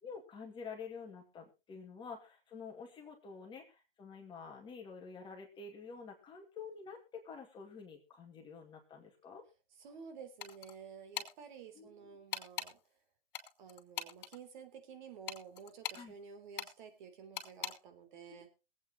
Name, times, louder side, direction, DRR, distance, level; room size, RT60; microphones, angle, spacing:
voice 1, 0.0-9.4 11.7-12.2 15.9-16.1 18.3-18.4, left 5 dB, 15° left, 1 dB, 2.3 m, -49 dB
voice 2, 9.8-12.8 13.6-18.5, right 6 dB, 50° right, 6 dB, 3.5 m, -52 dB
sound 1, 10.4-10.8 11.1-11.3 12.3-12.7 13.3-14.4 15.3-16.0 16.6-16.7 17.4-17.7, left 9 dB, 55° left, 3.3 m, -40 dB
22.5 x 8.6 x 3.1 m, 0.29 s
hypercardioid pair, 145°, 30 cm